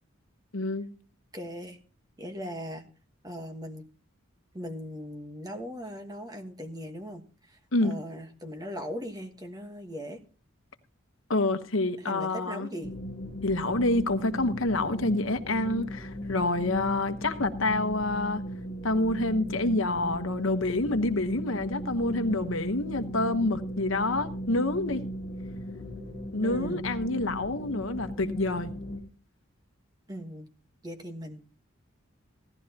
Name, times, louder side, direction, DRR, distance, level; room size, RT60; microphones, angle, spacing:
voice 1, 0.5-0.9 7.7-7.9 11.3-12.7 13.4-18.4 18.8-25.0 26.3-28.7, left 2 dB, 70° left, 1.1 m, -27 dB
voice 2, 1.3-1.8 2.2-2.9 3.2-3.9 4.5-10.2 12.0-12.9 26.4-26.8 30.1-30.5 30.8-31.6, equal, 20° right, 1.3 m, -39 dB
sound 1, 12.8-29.0, equal, 25° left, 1.9 m, -37 dB
17.0 x 12.0 x 2.9 m
head